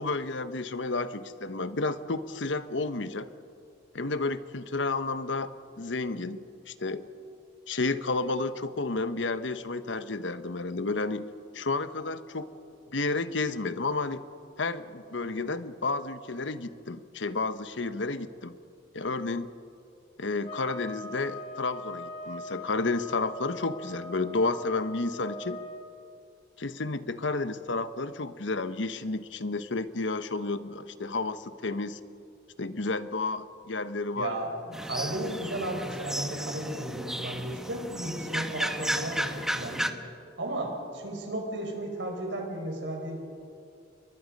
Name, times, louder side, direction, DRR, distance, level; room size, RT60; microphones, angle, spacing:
voice 1, 0.0-3.3 3.9-5.5 5.8-7.0 7.7-11.3 11.5-12.5 12.9-14.2 14.6-18.6 18.9-19.5 20.2-25.6 26.6-32.0 32.6-34.3, left 3 dB, 75° left, 11 dB, 1.1 m, -31 dB
sound 1, 20.4-25.9, left 2 dB, 30° left, 2.8 m, -41 dB
voice 2, 34.1-39.9 40.4-43.2, right 1 dB, 75° right, 1 dB, 5.5 m, -34 dB
sound 2, 34.7-39.9, right 1 dB, 5° right, 1.1 m, -33 dB
29.5 x 23.5 x 5.4 m, 2.5 s
head